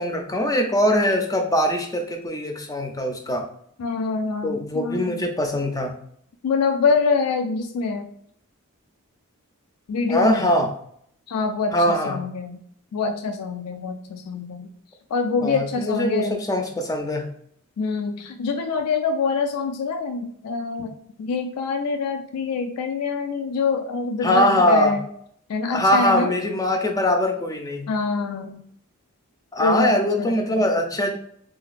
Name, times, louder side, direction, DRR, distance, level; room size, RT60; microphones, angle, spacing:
voice 1, 0.0-3.5 4.4-5.9 10.1-10.7 11.7-12.2 15.4-17.3 24.2-25.0 25.7-27.9 29.5-31.2, left 1 dB, 15° left, 3 dB, 0.4 m, -22 dB
voice 2, 3.8-5.2 6.4-8.1 9.9-10.5 11.3-12.6 12.9-14.7 15.1-16.4 17.8-20.9 21.2-25.0 25.5-26.3 27.9-28.6 29.6-30.7, left 4 dB, 85° left, 6 dB, 0.3 m, -25 dB
3.9 x 2.2 x 2.4 m, 0.65 s
head